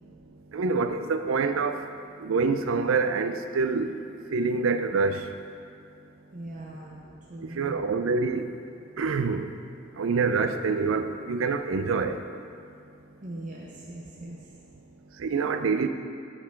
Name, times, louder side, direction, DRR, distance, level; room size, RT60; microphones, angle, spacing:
voice 1, 0.0-5.3 7.4-8.6 8.9-9.6 9.9-12.3 15.1-15.9, right 4 dB, 80° right, 8 dB, 0.4 m, -27 dB
voice 2, 6.3-7.8 12.6-12.8 13.2-14.5, right 1 dB, 40° right, -3 dB, 0.6 m, -41 dB
6.6 x 5.9 x 4.6 m, 2.4 s
head